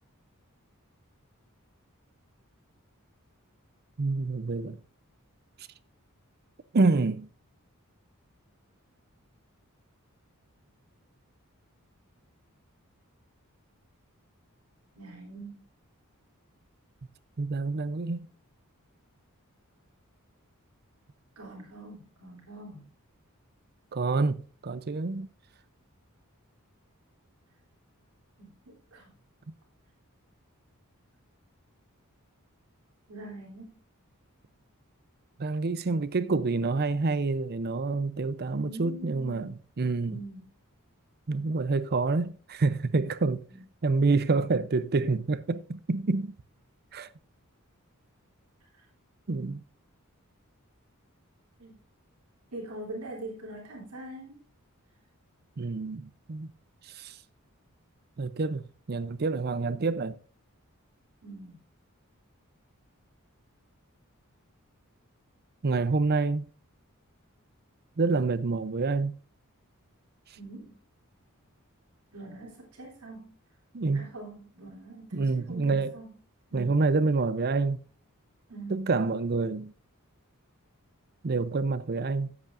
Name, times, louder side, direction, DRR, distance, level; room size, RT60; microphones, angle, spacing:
voice 1, 4.0-4.8 6.7-7.3 17.4-18.3 23.9-25.3 35.4-40.2 41.3-43.4 43.8-46.4 46.9-47.1 49.3-49.6 55.6-56.5 57.0-57.1 58.2-60.1 65.6-66.5 68.0-69.1 73.7-74.0 75.1-75.9 76.5-77.8 78.7-79.7 81.2-82.3, right 3 dB, 50° right, 0.6 m, -27 dB
voice 2, 14.9-15.7 21.3-22.9 28.4-29.1 33.1-33.7 38.5-39.6 40.1-40.5 43.5-43.6 48.6-48.9 51.6-51.8 52.5-54.4 61.2-61.6 70.4-70.8 72.1-73.3 73.9-76.1 76.5-76.8 78.5-78.9, right 2 dB, 90° right, 3.2 m, -43 dB
13.5 x 8.3 x 2.6 m
head